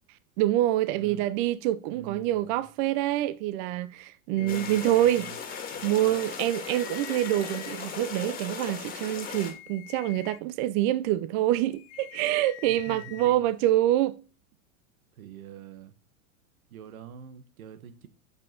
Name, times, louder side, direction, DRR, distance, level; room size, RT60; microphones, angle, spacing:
voice 1, 0.4-5.3 5.8-14.2, right 14 dB, 40° right, 0.4 m, -26 dB
voice 2, 0.9-1.2 1.9-2.6 4.4-5.4 5.7-6.2 12.7-13.5 15.1-15.9 16.7-18.1, right 9 dB, 85° right, 1.3 m, -45 dB
sound 1, 4.4-5.3 6.1-7.8 9.1-10.4 11.7-13.3, left 13 dB, 45° left, 0.8 m, -46 dB
sound 2, 4.5-9.5, left 6 dB, 20° left, 1.8 m, -37 dB
7.0 x 5.5 x 5.1 m
supercardioid pair, 140°, 41 cm